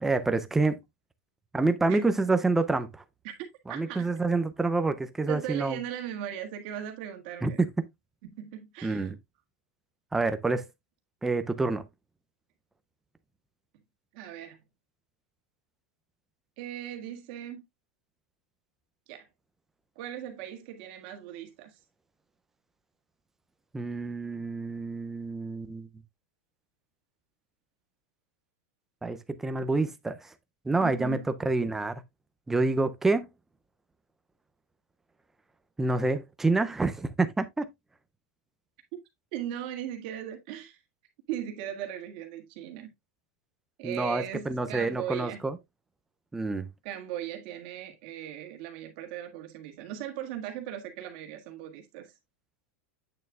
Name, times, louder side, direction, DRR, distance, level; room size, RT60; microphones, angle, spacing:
voice 1, 0.0-0.8 1.5-3.0 3.7-5.8 7.4-7.5 8.8-9.2 10.1-10.7 11.2-11.8 23.7-25.9 29.0-30.3 30.7-32.0 32.5-33.3 35.8-37.7 43.8-45.6 46.3-46.7, right 3 dB, 5° right, 0.4 m, -27 dB
voice 2, 3.7-4.1 5.3-7.6 8.2-9.1 14.1-14.6 16.6-17.6 19.1-19.3 20.0-21.8 30.8-31.3 39.3-40.8 41.3-42.9 43.8-45.4 46.8-52.1, right 11 dB, 40° right, 1.7 m, -38 dB
8.5 x 6.6 x 2.3 m
supercardioid pair, 180°, 7 cm